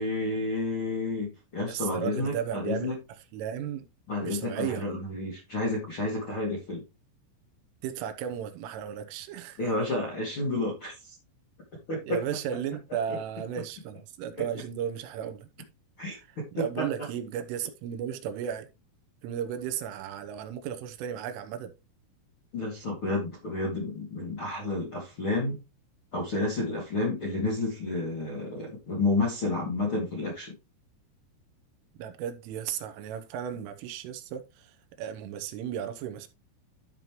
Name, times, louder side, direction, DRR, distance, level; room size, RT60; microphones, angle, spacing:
voice 1, 0.0-2.9 4.1-6.8 9.6-11.2 11.9-12.2 14.3-14.4 16.0-16.9 22.5-25.6 26.1-30.5, left 2 dB, 50° left, 1.6 m, -30 dB
voice 2, 1.7-2.9 3.3-3.9 4.2-4.9 7.8-9.6 12.1-15.5 16.1-16.3 16.5-18.7 19.2-21.7 32.0-36.3, right 9 dB, 80° right, 3.4 m, -35 dB
12.5 x 5.4 x 3.0 m
omnidirectional pair, 5.9 m